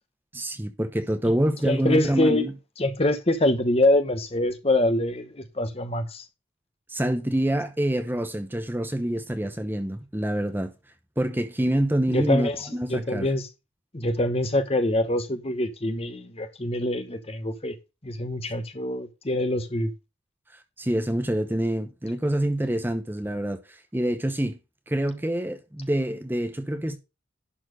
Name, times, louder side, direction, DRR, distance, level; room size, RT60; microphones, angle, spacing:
voice 1, 0.3-2.5 6.9-10.7 11.2-13.3 20.8-24.6 24.9-27.0, right 1 dB, 10° right, 0.8 m, -26 dB
voice 2, 1.6-2.5 2.8-6.2 12.1-13.5 13.9-17.8 18.0-19.9, left 1 dB, 30° left, 1.1 m, -25 dB
11.0 x 4.3 x 5.1 m
head